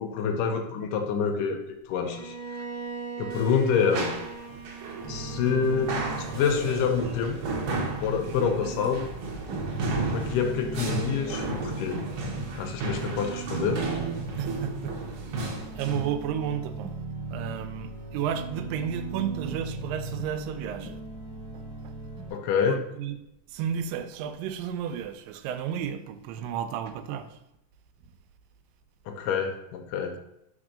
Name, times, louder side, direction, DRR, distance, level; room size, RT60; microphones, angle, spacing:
voice 1, 0.0-1.6 1.9-2.4 3.2-4.1 5.1-6.0 6.3-7.4 8.0-9.1 10.1-12.0 12.6-13.9 22.3-22.8 29.1-30.1, left 6 dB, 80° left, 2.1 m, -27 dB
Bowed string instrument, 2.1-7.1, right 5 dB, 50° right, 1.5 m, -40 dB
sound 1, 3.3-16.1, right 3 dB, 70° right, 1.4 m, -34 dB
sound 2, 5.0-22.3, right 3 dB, 10° right, 1.6 m, -38 dB
voice 2, 8.3-8.7 14.4-14.9 15.3-15.4 15.8-16.9 17.3-21.0 22.7-23.2 23.5-27.4, right 8 dB, 85° right, 2.3 m, -32 dB
4.4 x 4.4 x 5.0 m
omnidirectional pair, 3.9 m